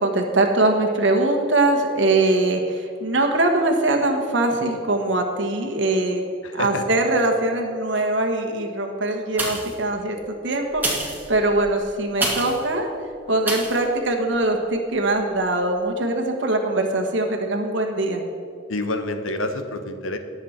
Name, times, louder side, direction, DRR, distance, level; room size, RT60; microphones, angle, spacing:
voice 1, 0.0-6.2 6.5-10.2 10.4-10.8 11.3-12.9 13.3-18.2, right 2 dB, 65° right, 3 dB, 1.3 m, -22 dB
voice 2, 6.4-6.9 18.7-20.2, left 2 dB, 85° left, 7 dB, 1.2 m, -28 dB
sound 1, 9.3-9.9 10.7-12.7 13.4-13.8 14.3-14.4, right 2 dB, 10° right, 2.0 m, -28 dB
19.0 x 7.3 x 4.3 m, 2.6 s
head